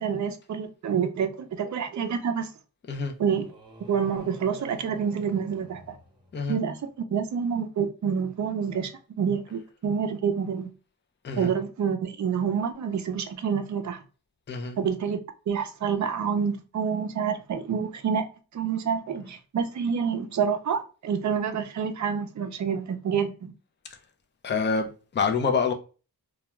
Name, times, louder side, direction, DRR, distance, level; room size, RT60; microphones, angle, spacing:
voice 1, 0.0-2.5 3.2-3.5 3.9-5.9 6.5-8.9 9.2-10.7 11.4-14.0 14.8-15.2 15.5-18.3 18.5-23.5, right 7 dB, 50° right, 0.4 m, -28 dB
sound 1, 3.3-6.7, right 2 dB, 10° right, 0.7 m, -49 dB
voice 2, 24.4-25.7, left 5 dB, 30° left, 0.4 m, -26 dB
2.3 x 2.2 x 2.9 m
wide cardioid pair, 140°, 38 cm